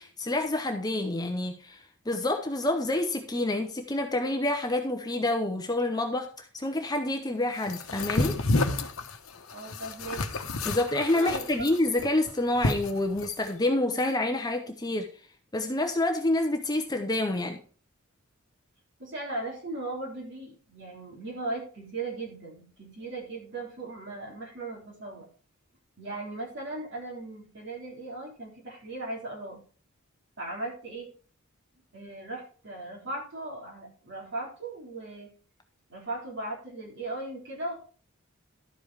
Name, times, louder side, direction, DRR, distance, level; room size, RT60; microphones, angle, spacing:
voice 1, 0.0-8.4 10.6-15.1 15.5-17.6, left 1 dB, 20° left, 0.8 m, -28 dB
sound 1, 7.7-13.5, left 2 dB, 70° left, 1.0 m, -30 dB
voice 2, 9.5-10.2 11.1-11.4 19.0-25.3 26.0-29.6 30.4-31.1 31.9-35.3 35.9-37.7, right 2 dB, 55° right, 3.6 m, -37 dB
12.0 x 5.3 x 4.8 m
head